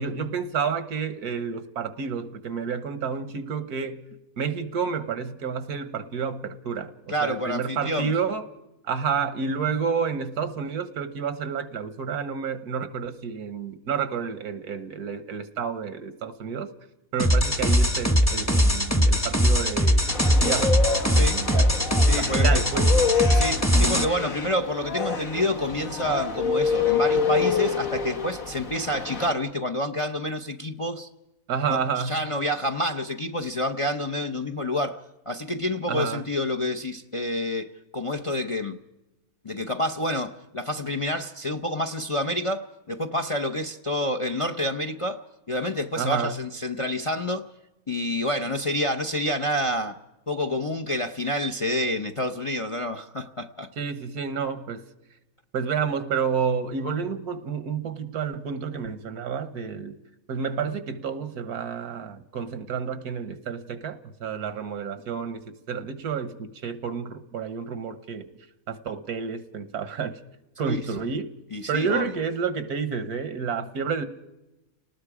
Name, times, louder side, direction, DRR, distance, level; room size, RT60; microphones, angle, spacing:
voice 1, 0.0-4.0 4.4-8.5 8.8-16.7 17.1-21.7 22.1-23.0 31.5-32.2 35.9-36.2 46.0-46.4 53.8-54.8 55.5-60.0 60.3-68.3 68.7-70.2 70.6-71.3 71.7-74.1, right 6 dB, 85° right, 1.6 m, -30 dB
voice 2, 7.1-8.1 21.1-21.4 22.1-22.6 23.3-31.1 31.7-38.8 39.4-45.2 45.5-47.5 47.9-50.0 50.3-53.7 70.7-70.8 71.5-72.1, left 1 dB, 35° left, 0.5 m, -28 dB
sound 1, 17.2-24.0, equal, 10° left, 1.0 m, -20 dB
sound 2, 20.1-29.3, left 5 dB, 65° left, 2.0 m, -27 dB
29.5 x 19.5 x 4.9 m
omnidirectional pair, 1.6 m